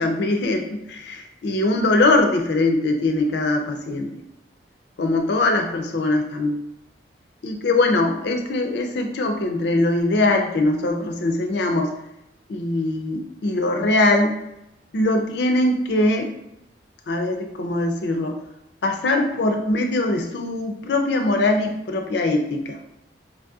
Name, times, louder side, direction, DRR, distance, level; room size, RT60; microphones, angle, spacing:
voice 1, 0.0-4.1 5.0-6.6 7.4-11.9 12.5-14.3 14.9-16.3 17.1-18.4 18.8-22.8, left 2 dB, 65° left, 4 dB, 0.5 m, -21 dB
4.1 x 2.7 x 2.3 m, 0.85 s
head